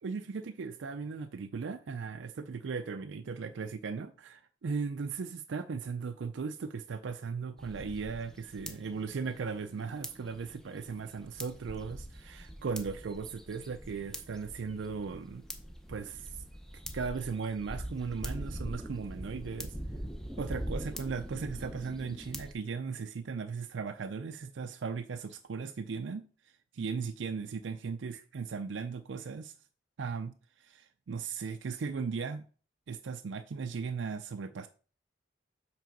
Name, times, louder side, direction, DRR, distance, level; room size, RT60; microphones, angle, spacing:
voice 1, 0.0-15.5 15.9-16.4 16.9-19.8 20.4-26.2 26.7-29.5 30.0-32.5 32.9-34.7, right 5 dB, 75° right, 0.4 m, -37 dB
sound 1, 7.6-22.5, equal, 5° left, 0.7 m, -43 dB
7.5 x 3.3 x 5.2 m
head